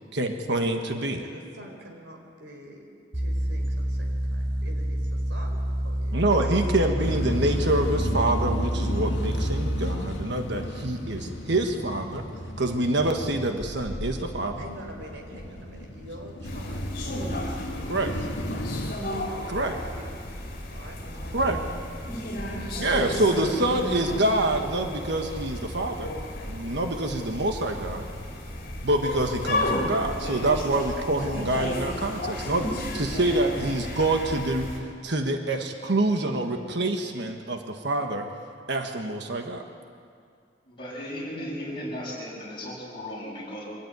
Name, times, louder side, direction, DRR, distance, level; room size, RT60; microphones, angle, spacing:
voice 1, 0.1-1.2 6.1-12.2 12.6-14.5 17.9-18.1 19.5-19.8 21.3-21.6 22.8-26.1 26.5-28.1 28.8-32.7 32.9-34.7 35.0-38.3 38.7-39.6, right 2 dB, 65° right, 4 dB, 1.4 m, -26 dB
voice 2, 1.0-2.9 3.1-5.6 5.8-7.3 14.6-18.7 19.0-20.2 20.7-21.0, right 1 dB, 80° right, 1 dB, 4.1 m, -46 dB
sound 1, 3.1-10.0, equal, 30° right, 2.4 m, -28 dB
sound 2, 7.0-18.9, equal, 80° left, 1.8 m, -34 dB
sound 3, 16.4-34.8, left 1 dB, 50° left, 4.1 m, -33 dB
voice 3, 30.2-30.6 33.0-33.6 40.7-43.6, equal, 25° left, -6 dB, 7.3 m, -36 dB
24.0 x 14.0 x 9.6 m, 2.3 s
head